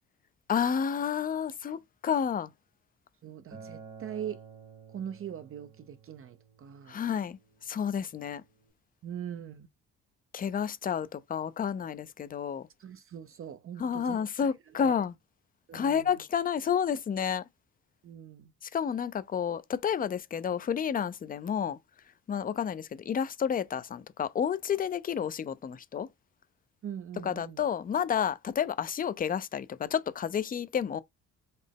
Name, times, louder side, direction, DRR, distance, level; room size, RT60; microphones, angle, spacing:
voice 1, 0.5-2.5 6.9-8.4 10.3-12.7 13.8-15.1 15.7-17.4 18.6-21.8 22.3-26.1 27.2-31.0, left 7 dB, 30° left, 0.4 m, -30 dB
voice 2, 3.2-4.4 4.9-7.0 9.0-9.7 12.8-14.2 14.8-14.9 15.7-16.2 18.0-18.5 26.8-27.6, right 9 dB, 45° right, 0.5 m, -41 dB
Acoustic guitar, 3.5-8.7, right 6 dB, 70° right, 1.8 m, -52 dB
4.1 x 2.1 x 3.4 m
cardioid pair, 90°, 30 cm